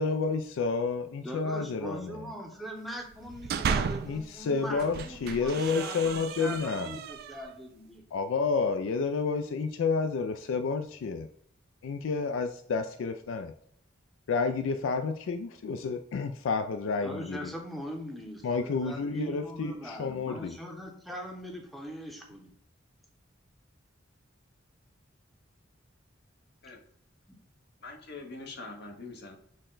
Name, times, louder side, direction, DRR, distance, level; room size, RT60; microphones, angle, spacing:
voice 1, 0.0-2.2 4.1-7.0 8.1-11.3 11.8-13.5 14.3-17.5 18.4-20.6, left 4 dB, 75° left, 0.3 m, -30 dB
voice 2, 1.2-8.0 17.0-22.5 27.3-27.4, equal, ahead, 0.7 m, -41 dB
sound 1, 3.1-4.2 4.7-7.6, right 6 dB, 50° right, 0.3 m, -34 dB
voice 3, 27.8-29.4, left 3 dB, 60° left, 0.9 m, -43 dB
6.4 x 2.2 x 3.8 m
head